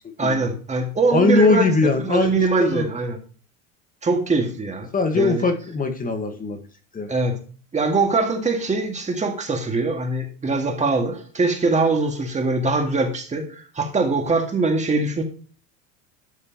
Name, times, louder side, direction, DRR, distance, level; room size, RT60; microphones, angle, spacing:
voice 1, 0.2-1.7 2.0-3.2 4.0-4.9 5.1-5.5 7.1-7.4 7.7-15.2, right 3 dB, 20° right, 2.1 m, -22 dB
voice 2, 1.1-2.9 4.9-6.6 6.9-7.1, left 3 dB, 20° left, 1.7 m, -21 dB
11.0 x 6.5 x 3.1 m
supercardioid pair, 105°, 36 cm